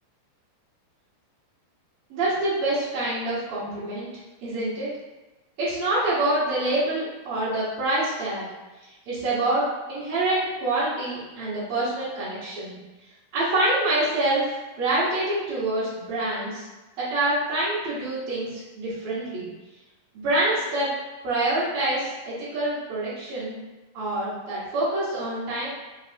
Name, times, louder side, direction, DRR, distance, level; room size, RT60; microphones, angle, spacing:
voice 1, 2.1-4.1 4.4-4.9 5.6-8.4 9.1-9.6 9.9-12.8 13.3-16.7 17.0-19.5 20.2-20.9 21.2-23.6 23.9-25.7, right 2 dB, 60° right, -12 dB, 1.9 m, -26 dB
5.2 x 3.4 x 2.5 m, 1.1 s
omnidirectional pair, 4.3 m